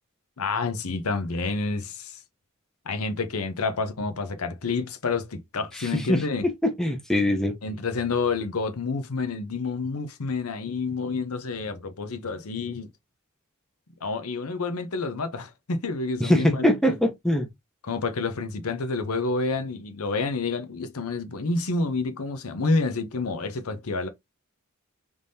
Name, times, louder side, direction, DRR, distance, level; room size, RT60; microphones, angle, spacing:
voice 1, 0.4-2.2 2.9-6.5 7.6-12.9 14.0-17.0 17.8-24.1, left 3 dB, 90° left, 0.8 m, -29 dB
voice 2, 5.7-6.2 6.6-7.5 16.2-17.5, left 1 dB, ahead, 0.7 m, -22 dB
3.6 x 3.4 x 2.7 m
head